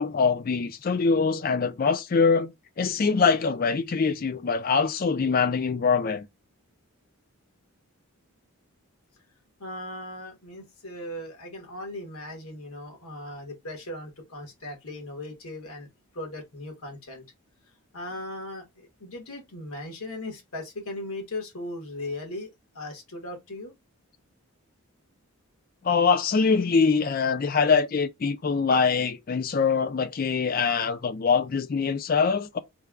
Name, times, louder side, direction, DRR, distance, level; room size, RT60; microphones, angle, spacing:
voice 1, 0.0-2.5 2.8-6.3 25.8-32.6, left 5 dB, 40° left, 0.3 m, -23 dB
voice 2, 9.6-15.9 16.1-17.2 17.9-23.7, left 1 dB, 80° left, 1.5 m, -38 dB
3.3 x 2.2 x 3.5 m
head